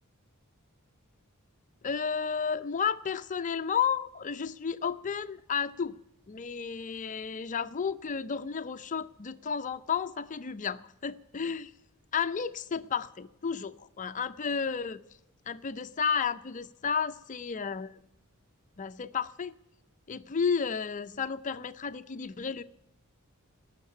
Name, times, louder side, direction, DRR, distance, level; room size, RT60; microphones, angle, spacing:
voice 1, 1.8-6.0 6.3-11.7 12.1-15.0 15.5-18.0 18.8-19.5 20.1-22.6, left 6 dB, 35° left, 0.5 m, -32 dB
18.5 x 6.6 x 10.0 m
head